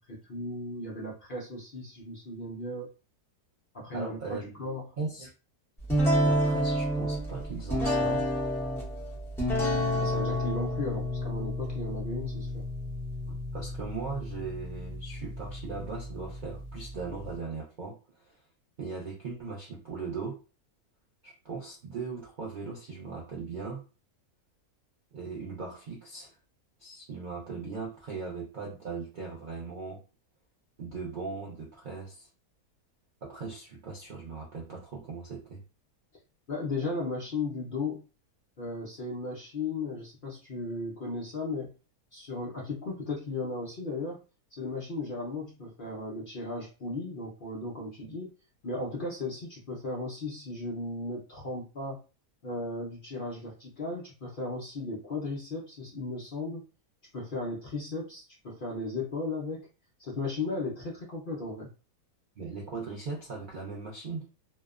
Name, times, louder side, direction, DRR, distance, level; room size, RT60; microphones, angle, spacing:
voice 1, 0.1-2.9 3.7-4.9 9.9-12.6 36.5-38.1 38.6-41.7 42.1-44.2 44.5-48.3 48.6-52.0 52.4-56.6 57.1-59.7 60.0-61.7, left 2 dB, 65° left, -3 dB, 0.5 m, -36 dB
voice 2, 3.9-4.6 5.0-5.3 6.2-8.2 13.3-18.4 18.8-20.4 21.2-23.8 25.1-26.3 26.8-30.0 30.8-32.3 33.2-35.6 62.4-64.3, right 4 dB, 80° right, -3 dB, 0.4 m, -39 dB
sound 1, 5.9-17.4, equal, 5° left, 0.5 m, -30 dB
2.7 x 2.1 x 2.4 m, 0.32 s
omnidirectional pair, 1.7 m